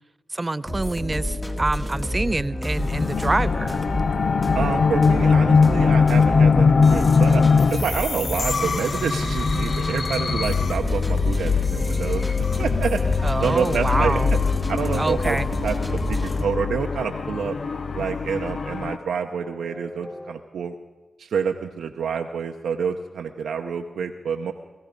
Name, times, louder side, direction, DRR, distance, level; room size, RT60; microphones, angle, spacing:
voice 1, 0.3-3.8 13.2-14.4 15.0-15.5, right 2 dB, 30° right, 17 dB, 0.5 m, -26 dB
sound 1, 0.6-20.3, left 1 dB, 15° left, 1.9 m, -30 dB
sound 2, 2.8-19.0, left 5 dB, 65° left, 0.5 m, -22 dB
voice 2, 4.5-7.4 7.7-12.3 12.6-14.2 14.7-17.6 17.9-20.7 21.2-24.5, right 6 dB, 85° right, 3 dB, 0.7 m, -28 dB
17.5 x 14.5 x 5.1 m, 1.2 s
cardioid pair, 45°, 0 cm